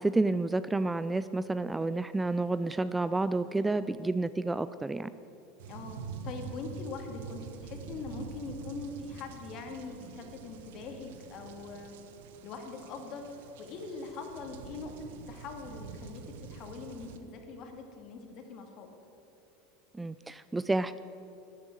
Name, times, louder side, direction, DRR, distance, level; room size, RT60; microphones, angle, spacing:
voice 1, 0.0-5.1 20.0-21.0, right 2 dB, 10° right, 14 dB, 0.3 m, -30 dB
sound 1, 5.6-17.2, right 5 dB, 80° right, 1.0 m, -46 dB
voice 2, 5.7-6.0 6.2-11.9 12.4-16.2 16.5-18.9, left 4 dB, 50° left, 3 dB, 2.3 m, -42 dB
12.5 x 8.9 x 8.6 m, 2.9 s
supercardioid pair, 120°, 0 cm